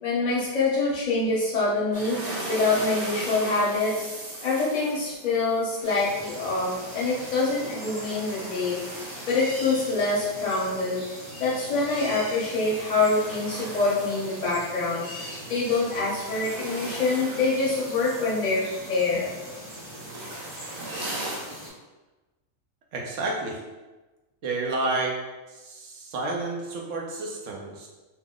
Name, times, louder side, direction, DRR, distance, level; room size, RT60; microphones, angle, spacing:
voice 1, 0.0-2.2 2.5-4.1 4.4-8.8 9.2-19.3, left 3 dB, 35° left, -7 dB, 0.9 m, -25 dB
sound 1, 1.9-11.2 11.5-21.4, right 1 dB, 90° right, 1.3 m, -40 dB
sound 2, 5.8-21.7, equal, 25° right, 0.7 m, -41 dB
voice 2, 22.9-23.6 24.4-25.2 25.5-27.9, right 2 dB, 70° right, -1 dB, 0.9 m, -30 dB
2.8 x 2.0 x 3.6 m, 1.2 s
omnidirectional pair, 1.4 m